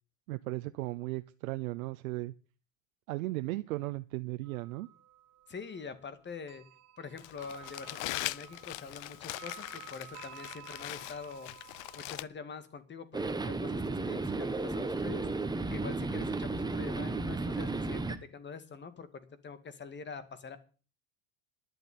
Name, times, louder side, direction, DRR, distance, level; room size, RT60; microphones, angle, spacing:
voice 1, 0.3-2.3 3.1-4.9, right 19 dB, 85° right, 0.8 m, -36 dB
sound 1, 4.4-12.1, right 11 dB, 40° right, 2.7 m, -53 dB
voice 2, 5.5-6.6 7.0-11.7 11.9-20.6, left 5 dB, 25° left, 2.2 m, -45 dB
Crumpling crinkling, 7.2-12.2, left 20 dB, 75° left, 0.7 m, -41 dB
sound 2, 13.1-18.2, right 3 dB, 10° right, 1.5 m, -33 dB
11.0 x 8.0 x 9.4 m
supercardioid pair, 105°, 41 cm